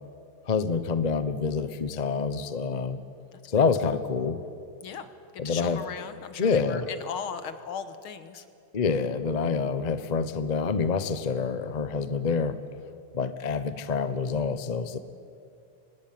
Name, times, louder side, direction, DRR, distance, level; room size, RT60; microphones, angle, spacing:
voice 1, 0.5-3.0 3.5-4.4 5.4-5.8 6.4-6.9 8.7-12.6 13.1-15.0, left 5 dB, 40° left, 12 dB, 0.6 m, -27 dB
voice 2, 5.3-8.4, left 7 dB, 75° left, 11 dB, 2.2 m, -37 dB
25.0 x 19.5 x 9.4 m, 2.5 s
omnidirectional pair, 2.3 m